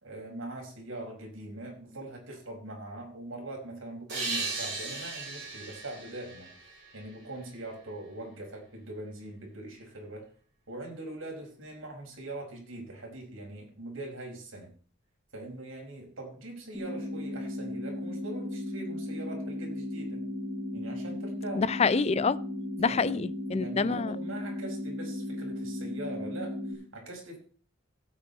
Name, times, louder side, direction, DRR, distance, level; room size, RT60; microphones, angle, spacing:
voice 1, 0.0-6.7 6.9-10.3 10.7-14.7 15.3-20.2 20.7-21.6 22.8-23.2 23.5-27.4, right 2 dB, 85° right, 5.0 m, -42 dB
sound 1, 4.1-7.6, right 3 dB, 60° right, 6.7 m, -37 dB
sound 2, 16.7-26.7, left 1 dB, ahead, 4.8 m, -36 dB
voice 2, 21.6-22.4 22.8-24.2, left 4 dB, 30° left, 0.4 m, -27 dB
16.5 x 8.3 x 4.1 m
head